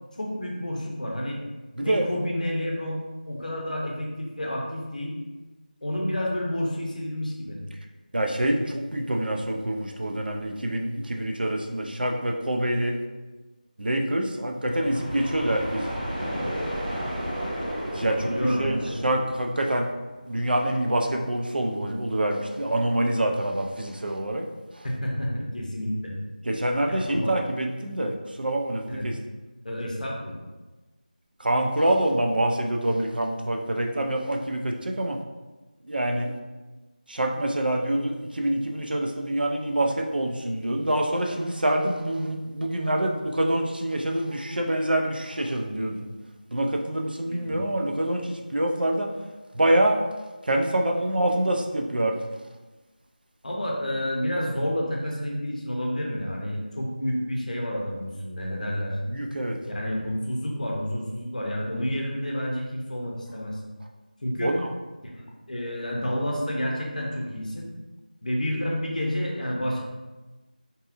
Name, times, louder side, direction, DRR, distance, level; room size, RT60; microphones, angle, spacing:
voice 1, 0.2-1.4 1.8-5.2 5.8-7.6 18.1-19.0 24.8-26.1 26.9-27.3 28.9-29.1 29.6-30.3 47.2-47.6 53.4-59.0 59.6-63.6 64.2-64.6 65.0-67.7 68.2-69.8, equal, 55° left, -2 dB, 0.6 m, -30 dB
voice 2, 1.8-2.1 8.1-13.0 13.8-15.9 17.9-18.2 18.6-19.9 20.2-24.5 24.8-24.9 26.5-29.2 31.4-35.2 35.9-36.3 37.1-46.1 46.5-49.1 49.5-50.0 50.4-52.2 59.1-59.6 64.4-64.6, right 1 dB, 85° right, 2 dB, 0.4 m, -26 dB
sound 1, 14.6-20.4, equal, 15° right, 0.5 m, -33 dB
2.7 x 2.4 x 2.4 m, 1.2 s
figure-of-eight pair, 175°, 5 cm